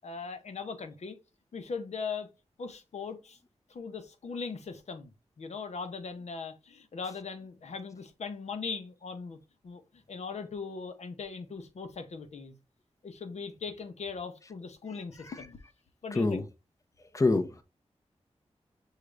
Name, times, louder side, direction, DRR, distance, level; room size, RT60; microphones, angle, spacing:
voice 1, 0.0-1.2 1.5-2.3 2.6-3.4 3.7-5.1 5.4-9.4 9.6-12.6 13.0-15.6 16.0-16.4, left 5 dB, 75° left, 0.8 m, -39 dB
voice 2, 14.9-15.5 16.1-16.5 17.1-17.6, left 3 dB, 30° left, 0.7 m, -28 dB
6.5 x 2.4 x 3.2 m
wide cardioid pair, 80°, 12 cm